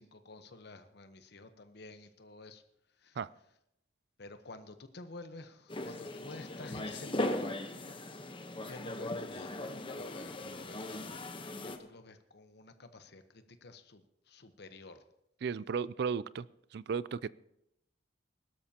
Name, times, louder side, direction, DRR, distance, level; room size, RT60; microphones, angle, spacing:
voice 1, 0.0-2.6 3.0-3.2 4.2-7.6 8.6-11.2 11.6-15.0, left 2 dB, 60° left, 9 dB, 1.0 m, -50 dB
sound 1, 5.7-11.8, left 1 dB, 25° left, 1.0 m, -38 dB
voice 2, 15.4-16.5 16.7-17.3, right 6 dB, 60° right, 19 dB, 0.4 m, -34 dB
21.5 x 12.5 x 2.9 m, 0.81 s
head